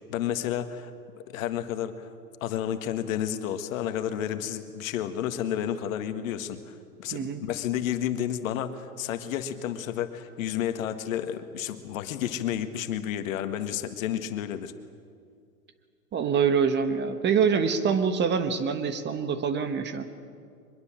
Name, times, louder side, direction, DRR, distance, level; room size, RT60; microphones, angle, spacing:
voice 1, 0.1-0.9 1.3-2.1 2.4-14.7, left 10 dB, 55° left, 9 dB, 1.7 m, -31 dB
voice 2, 7.1-7.4 16.1-20.1, right 6 dB, 20° right, 10 dB, 1.3 m, -25 dB
23.0 x 21.5 x 7.5 m, 2.3 s
hypercardioid pair, 115°, 47 cm